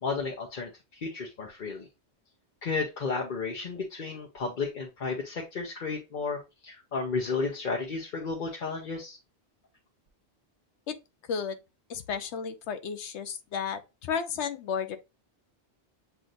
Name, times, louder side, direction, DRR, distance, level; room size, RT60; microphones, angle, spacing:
voice 1, 0.0-1.9 2.6-9.2, left 4 dB, 50° left, 0.9 m, -33 dB
voice 2, 11.9-15.0, left 6 dB, 90° left, 1.0 m, -33 dB
7.7 x 2.7 x 2.6 m
omnidirectional pair, 1.1 m